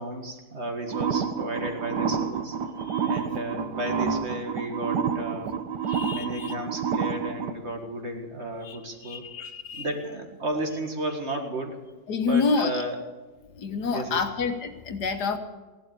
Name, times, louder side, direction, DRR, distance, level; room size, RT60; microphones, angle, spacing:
voice 1, 0.0-2.6 3.0-5.6 6.1-9.2 9.7-11.8 12.2-13.0 13.9-14.2, right 1 dB, 40° right, 3 dB, 2.1 m, -33 dB
sound 1, 0.9-7.5, right 6 dB, 80° right, 1.6 m, -29 dB
voice 2, 2.8-3.2 5.8-6.5 8.6-8.8 9.0-9.9 12.1-12.7 13.5-15.4, left 5 dB, 75° left, 7 dB, 1.7 m, -28 dB
16.5 x 12.0 x 6.8 m, 1.3 s
omnidirectional pair, 1.8 m